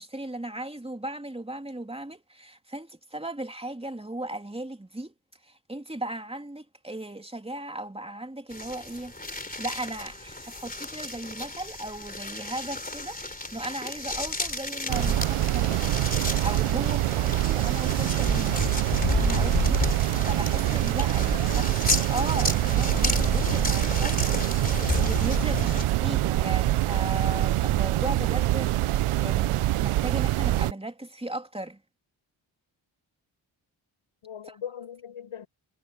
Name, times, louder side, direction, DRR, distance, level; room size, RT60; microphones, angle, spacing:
voice 1, 0.0-5.1 5.4-15.8 16.1-18.7 19.1-19.8 20.2-21.7 22.1-24.2 25.0-28.8 29.2-31.8, right 1 dB, 10° right, 3.0 m, -36 dB
sound 1, 8.5-25.9, left 2 dB, 15° left, 3.2 m, -31 dB
sound 2, 14.9-30.7, right 15 dB, 85° right, 0.7 m, -25 dB
voice 2, 21.3-21.7 23.3-23.9 24.2-24.3 24.9-25.2 25.5-25.6 34.2-35.5, left 8 dB, 80° left, 7.7 m, -42 dB
sound 3, 21.3-21.8 22.3-22.7 23.6-23.7 24.3-24.4 24.9-25.6, right 6 dB, 60° right, 7.8 m, -47 dB
supercardioid pair, 45°, 50 cm